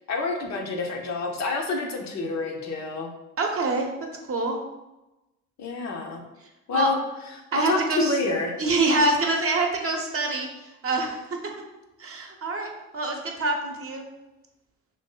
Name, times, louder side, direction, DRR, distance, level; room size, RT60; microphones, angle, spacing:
voice 1, 0.1-3.1 5.6-6.2 6.7-7.0 7.5-8.5, left 3 dB, 50° left, 2 dB, 0.7 m, -28 dB
voice 2, 3.4-4.6 6.7-6.9 7.5-8.1 8.6-10.5 10.8-11.2 11.4-11.5 12.0-14.0, right 2 dB, 40° right, 2 dB, 0.8 m, -25 dB
3.0 x 2.7 x 3.7 m, 1.0 s
hypercardioid pair, 55°, 36 cm